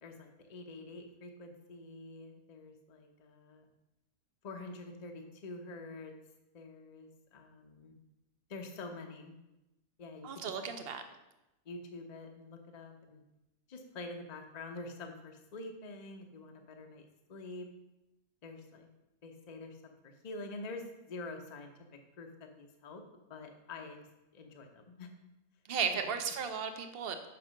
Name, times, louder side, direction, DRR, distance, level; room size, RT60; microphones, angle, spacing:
voice 1, 0.0-3.7 4.4-6.1 6.5-7.9 8.5-9.3 10.0-10.5 11.6-13.2 13.7-17.7 18.4-18.9 19.2-21.7 22.2-23.0 23.3-24.1 24.3-25.1, left 2 dB, 35° left, 4 dB, 0.8 m, -46 dB
voice 2, 10.2-11.0 25.7-27.3, right 6 dB, 50° right, 7 dB, 0.8 m, -35 dB
5.9 x 5.5 x 6.3 m, 0.96 s
omnidirectional pair, 1.5 m